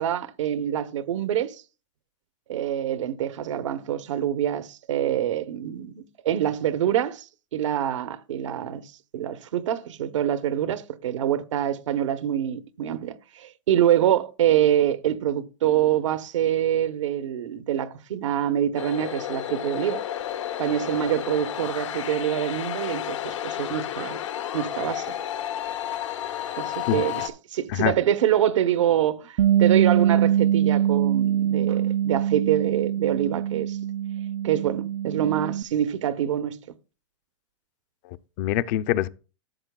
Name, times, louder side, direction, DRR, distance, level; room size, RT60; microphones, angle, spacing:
voice 1, 0.0-1.6 2.5-7.3 7.5-20.0 20.6-24.2 24.5-25.1 26.6-33.8 34.4-36.6, right 11 dB, 90° right, 0.9 m, -25 dB
sound 1, 18.8-27.3, left 11 dB, 85° left, 1.2 m, -32 dB
Bass guitar, 29.4-35.6, right 10 dB, 60° right, 0.4 m, -23 dB
voice 2, 38.1-39.1, left 12 dB, 40° left, 0.4 m, -25 dB
13.0 x 7.8 x 2.3 m
supercardioid pair, 160°, 15 cm